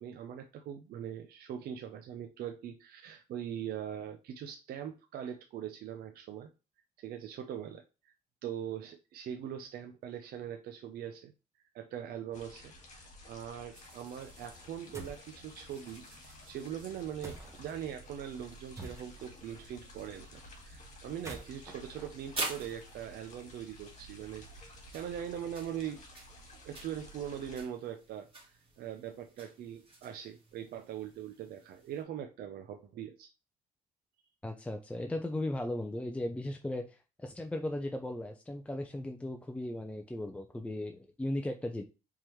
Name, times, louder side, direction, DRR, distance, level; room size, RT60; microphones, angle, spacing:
voice 1, 0.0-6.5 7.0-8.1 8.4-11.3 11.7-20.3 20.6-26.0 26.6-33.3, right 9 dB, 65° right, 5 dB, 0.6 m, -42 dB
sound 1, 12.3-27.6, left 1 dB, 45° left, 1.9 m, -53 dB
sound 2, 13.7-32.0, right 2 dB, 35° right, 2.3 m, -49 dB
sound 3, 14.9-15.3 17.2-17.7 18.7-19.4 21.1-23.0, right 2 dB, 15° right, 1.4 m, -48 dB
voice 2, 34.4-41.8, left 1 dB, 5° left, 4 dB, 0.6 m, -37 dB
4.6 x 3.6 x 3.1 m, 0.29 s
cardioid pair, 110°, 17 cm